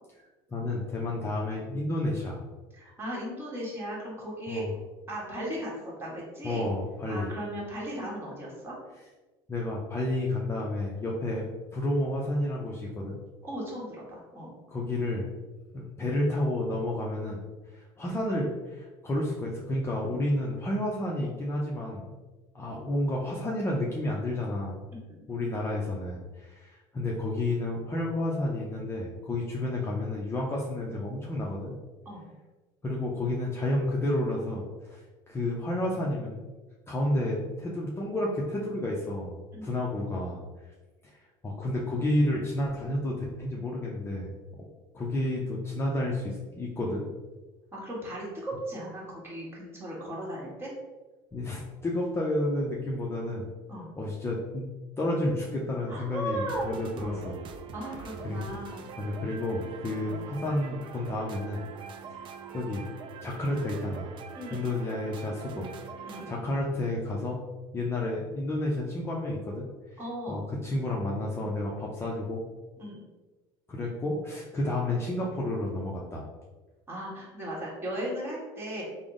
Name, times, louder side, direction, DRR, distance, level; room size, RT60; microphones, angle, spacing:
voice 1, 0.5-2.4 4.5-4.7 6.4-7.3 9.5-11.4 11.7-13.2 14.7-15.3 15.7-17.4 17.7-22.0 22.5-24.8 25.3-31.7 32.8-35.0 35.3-36.4 36.9-40.4 41.0-41.1 41.4-44.3 44.9-47.0 51.3-53.5 54.0-54.7 55.0-57.4 58.2-58.4 59.0-61.6 62.5-62.9 63.2-64.1 64.5-65.7 66.3-67.4 67.7-69.7 70.3-72.4 73.7-76.3, left 1 dB, 20° left, -3 dB, 0.5 m, -30 dB
voice 2, 2.7-4.7 5.1-5.7 6.0-6.7 7.1-8.7 13.4-14.5 25.1-25.2 32.0-32.3 39.5-39.7 47.7-50.7 53.7-53.9 55.9-56.7 56.9-57.3 57.7-58.8 60.0-60.2 64.3-64.7 66.1-66.3 70.0-70.4 72.8-73.0 76.9-78.8, equal, 20° right, -5 dB, 1.4 m, -37 dB
sound 1, 56.3-66.3, right 6 dB, 45° right, 0.4 m, -44 dB
3.4 x 2.0 x 3.7 m, 1.2 s
supercardioid pair, 95°, 12 cm